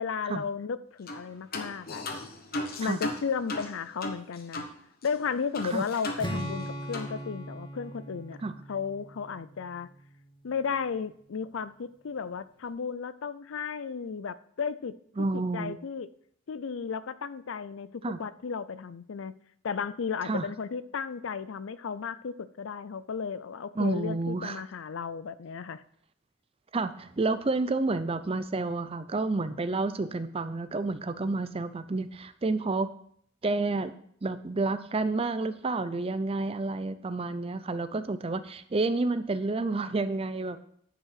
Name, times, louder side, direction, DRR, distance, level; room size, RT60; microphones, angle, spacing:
voice 1, 0.0-2.1 2.8-4.6 5.0-8.4 8.7-9.9 10.4-14.9 15.2-16.1 16.5-19.4 19.6-25.8, left 6 dB, 65° left, 16 dB, 0.4 m, -34 dB
sound 1, 1.1-1.2 1.5-4.7 5.0-5.1 5.5-6.6 6.9-7.1, left 2 dB, 45° left, 1.1 m, -36 dB
Strum, 6.2-10.3, equal, 20° left, 1.4 m, -39 dB
voice 2, 15.2-15.8 18.0-18.2 20.3-20.5 23.8-24.6 26.7-32.9 33.4-33.9 34.2-40.6, right 3 dB, 25° right, 12 dB, 0.4 m, -30 dB
10.0 x 5.4 x 5.8 m, 0.65 s
head